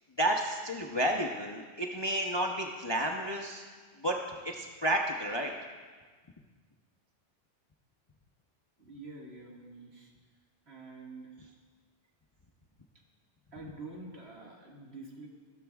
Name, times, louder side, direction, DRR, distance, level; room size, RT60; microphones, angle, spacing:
voice 1, 0.2-3.6 4.0-4.2 4.4-5.5, right 1 dB, 25° left, 1 dB, 0.6 m, -31 dB
voice 2, 8.8-10.1 10.7-11.3 13.5-15.3, right 3 dB, 55° right, -2 dB, 2.2 m, -47 dB
16.0 x 13.0 x 2.4 m, 1.5 s
omnidirectional pair, 1.3 m